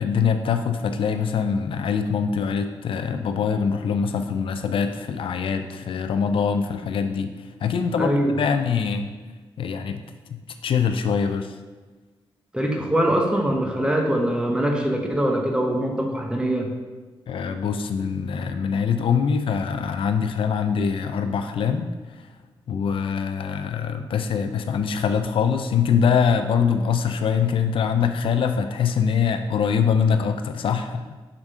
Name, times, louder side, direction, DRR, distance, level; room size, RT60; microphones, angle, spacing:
voice 1, 0.0-7.3 7.6-9.1 9.6-10.0 10.3-11.5 17.3-21.9 22.7-31.0, left 6 dB, 70° left, 8 dB, 0.4 m, -23 dB
voice 2, 8.0-8.3 12.5-16.7, right 1 dB, 10° right, 1 dB, 1.1 m, -23 dB
5.1 x 3.5 x 5.5 m, 1.3 s
cardioid pair, 65°, 9 cm